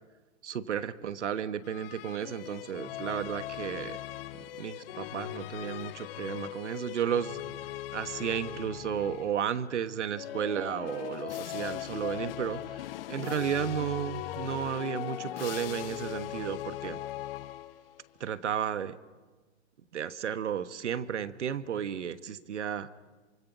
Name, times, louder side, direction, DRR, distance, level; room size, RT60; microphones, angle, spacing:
voice 1, 0.4-4.0 4.5-7.4 7.9-12.8 13.1-17.0 18.2-18.9 19.9-22.9, right 8 dB, 80° right, 12 dB, 1.4 m, -33 dB
sound 1, 1.6-9.5 10.1-18.0, left 13 dB, 55° left, 0.9 m, -39 dB
27.5 x 25.0 x 6.1 m, 1.3 s
hypercardioid pair, 130°, 35 cm